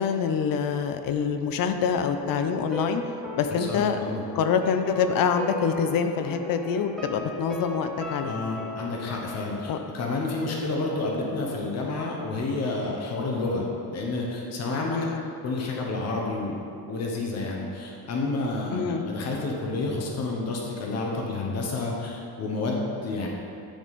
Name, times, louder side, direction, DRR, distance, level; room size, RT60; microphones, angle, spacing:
voice 1, 0.0-3.0 3.4-4.0 4.3-8.4 9.7-9.8 14.9-15.2 18.7-19.1, left 6 dB, 60° left, 8 dB, 0.5 m, -25 dB
sound 1, 1.9-10.9 11.2-11.3, left 2 dB, ahead, 0.7 m, -38 dB
voice 2, 3.5-4.2 8.2-15.1 15.4-23.3, left 3 dB, 40° left, -1 dB, 0.9 m, -30 dB
10.0 x 4.0 x 3.6 m, 2.6 s
cardioid pair, 165°, 38 cm